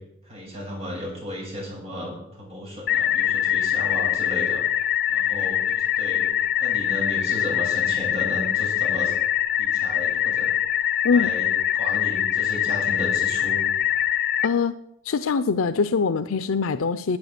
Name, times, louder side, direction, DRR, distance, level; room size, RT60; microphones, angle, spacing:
voice 1, 0.2-4.6 5.1-6.3 6.6-9.1 9.6-10.5 11.1-11.5 11.7-13.6, equal, 30° right, -3 dB, 7.3 m, -34 dB
sound 1, 2.9-14.5, left 11 dB, 50° left, 0.7 m, -23 dB
voice 2, 14.4-14.8 15.0-17.2, left 5 dB, 85° left, 12 dB, 0.6 m, -23 dB
11.5 x 9.3 x 8.2 m, 0.79 s
head